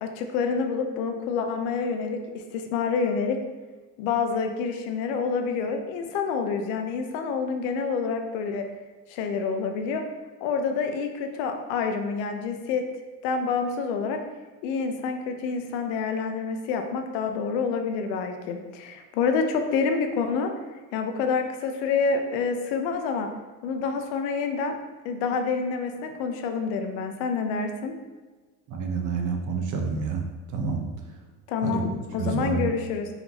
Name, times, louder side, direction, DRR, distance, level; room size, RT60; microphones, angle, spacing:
voice 1, 0.0-3.4 4.0-8.6 9.1-10.0 10.4-12.9 13.2-14.2 14.6-20.5 20.9-23.3 23.6-24.7 25.0-27.9 31.5-33.1, left 5 dB, 80° left, 5 dB, 0.7 m, -27 dB
voice 2, 28.7-30.2 30.5-30.8 31.6-31.8 32.2-32.7, right 5 dB, 45° right, 3 dB, 0.8 m, -28 dB
4.3 x 2.7 x 4.0 m, 1.3 s
cardioid pair, 115°, 42 cm